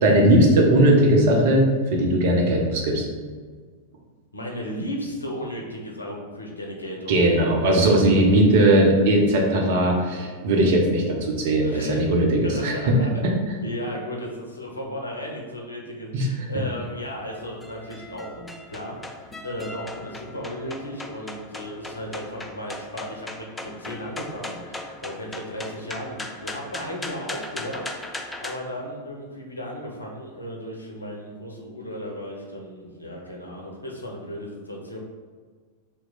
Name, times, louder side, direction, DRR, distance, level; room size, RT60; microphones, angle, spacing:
voice 1, 0.0-3.0 7.1-13.0 16.1-16.3, right 1 dB, 55° right, 0 dB, 0.7 m, -19 dB
voice 2, 4.3-8.1 11.6-13.3 13.6-35.0, equal, 80° left, 0 dB, 0.6 m, -35 dB
sound 1, 16.8-28.6, left 2 dB, 10° left, 0.3 m, -38 dB
2.9 x 2.1 x 4.0 m, 1.5 s
figure-of-eight pair, 90°, 0 cm